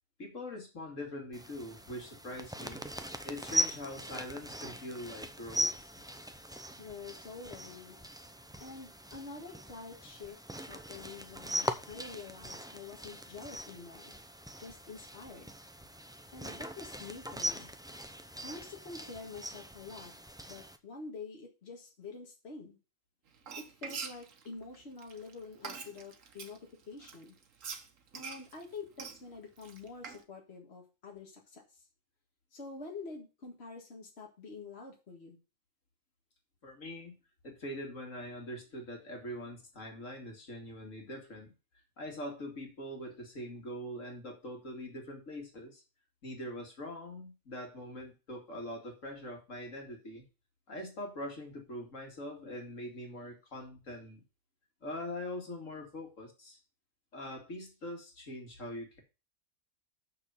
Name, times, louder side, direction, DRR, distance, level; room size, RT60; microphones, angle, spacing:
voice 1, 0.2-2.8 3.2-5.7 36.6-37.1 37.4-41.5 42.0-45.8 46.2-50.2 50.7-54.2 54.8-56.6 57.1-59.0, left 1 dB, 80° left, 2 dB, 2.7 m, -43 dB
sound 1, 1.3-20.8, equal, 5° right, 0.4 m, -40 dB
voice 2, 6.8-8.0 8.6-14.1 14.6-15.5 16.3-17.7 18.4-20.1 20.5-22.8 23.6-27.4 28.1-31.8 32.5-35.4, left 4 dB, 55° left, 0 dB, 2.2 m, -47 dB
Frying (food), 23.3-26.6 27.0-30.2, right 6 dB, 80° right, 1.5 m, -44 dB
6.7 x 6.3 x 7.0 m, 0.31 s
omnidirectional pair, 1.3 m